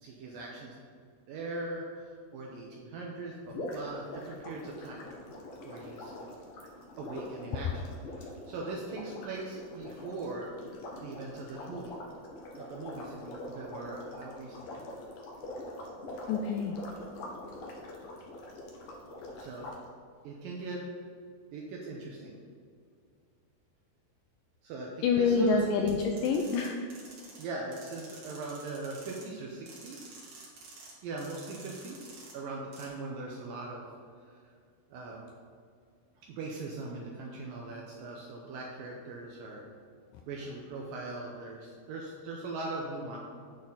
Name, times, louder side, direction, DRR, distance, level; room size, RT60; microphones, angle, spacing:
voice 1, 0.0-0.8 1.3-5.1 5.6-6.1 7.0-7.9 8.2-10.5 11.0-12.0 12.6-14.8 19.4-19.7 20.2-20.8 21.5-22.4 24.6-25.7 27.4-30.1 31.0-33.8 34.3-34.4 34.9-35.2 36.3-39.7 40.3-43.2, right 3 dB, 75° right, -1 dB, 2.3 m, -40 dB
sound 1, 3.5-19.8, left 1 dB, 70° left, 2.5 m, -44 dB
voice 2, 16.3-16.8 25.0-26.8, left 4 dB, 85° left, 3 dB, 2.0 m, -27 dB
sound 2, 25.9-27.4 27.7-29.2 29.7-30.9 31.2-32.3 32.7-32.9, right 3 dB, 60° right, 3.1 m, -50 dB
8.6 x 4.0 x 7.1 m, 2.2 s
omnidirectional pair, 4.5 m